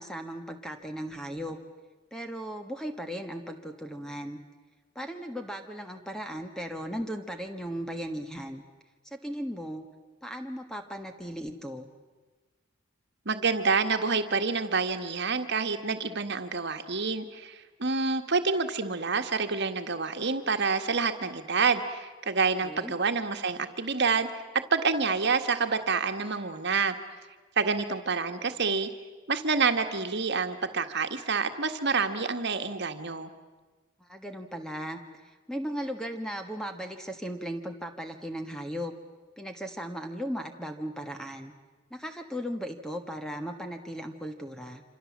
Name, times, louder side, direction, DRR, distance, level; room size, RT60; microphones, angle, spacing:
voice 1, 0.0-1.6 2.1-4.4 4.9-8.6 9.0-9.8 10.2-11.9 22.6-22.9 34.0-38.9 39.4-41.5 41.9-44.8, equal, 5° left, 5 dB, 1.4 m, -37 dB
voice 2, 13.2-24.3 24.7-26.9 27.6-28.9 29.3-33.3, right 4 dB, 50° right, 7 dB, 1.7 m, -28 dB
27.0 x 26.5 x 7.4 m, 1.3 s
head